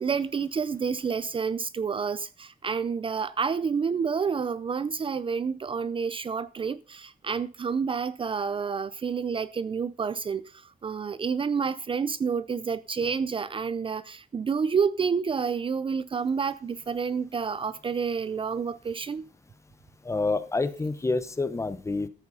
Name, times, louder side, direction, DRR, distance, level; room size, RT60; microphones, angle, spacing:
voice 1, 0.0-19.3, right 6 dB, 35° right, 0.5 m, -29 dB
voice 2, 20.0-22.1, left 3 dB, 20° left, 1.0 m, -28 dB
13.5 x 7.9 x 5.5 m
wide cardioid pair, 155°, 15 cm